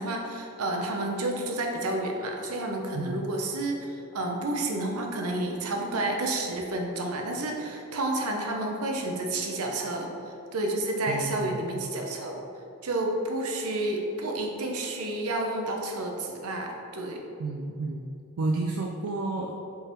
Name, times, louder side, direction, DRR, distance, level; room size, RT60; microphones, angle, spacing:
voice 1, 0.0-12.4 12.8-17.2, right 2 dB, 85° right, 1 dB, 0.8 m, -30 dB
voice 2, 2.9-3.3 11.1-11.9 17.4-18.0 18.4-19.6, right 3 dB, 70° right, 1 dB, 0.4 m, -31 dB
5.4 x 3.9 x 4.5 m, 2.8 s
head